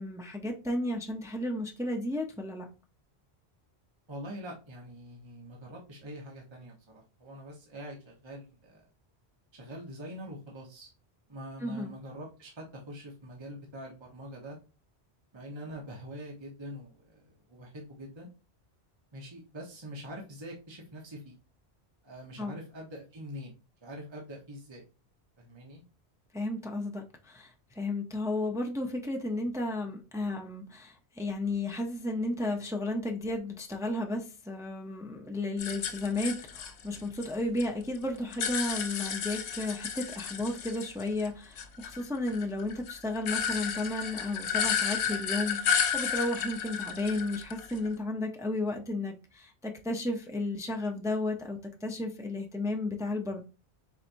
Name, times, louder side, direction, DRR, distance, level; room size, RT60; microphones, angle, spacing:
voice 1, 0.0-2.6 11.6-11.9 22.4-22.6 26.3-53.4, left 2 dB, 5° right, 2 dB, 0.5 m, -33 dB
voice 2, 4.1-8.8 9.5-10.9 11.3-14.6 15.3-18.3 19.1-21.4 22.0-23.5 23.8-24.8 25.4-25.8, equal, 25° right, -1 dB, 1.0 m, -44 dB
sound 1, 35.6-37.6 37.9-41.3 41.6-47.9, left 7 dB, 90° left, 0.9 m, -32 dB
4.7 x 4.2 x 2.6 m, 0.32 s
omnidirectional pair, 1.1 m